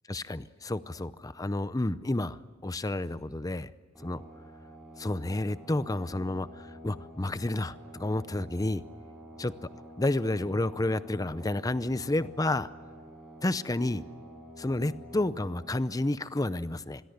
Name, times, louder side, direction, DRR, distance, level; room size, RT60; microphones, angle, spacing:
voice 1, 0.1-3.7 4.0-4.2 5.0-8.8 9.4-9.5 10.0-12.7 13.4-14.1 14.6-17.0, left 2 dB, 20° left, 15 dB, 0.6 m, -30 dB
sound 1, 3.9-15.8, equal, 5° right, 6.8 m, -48 dB
26.5 x 22.0 x 8.2 m, 1.5 s
head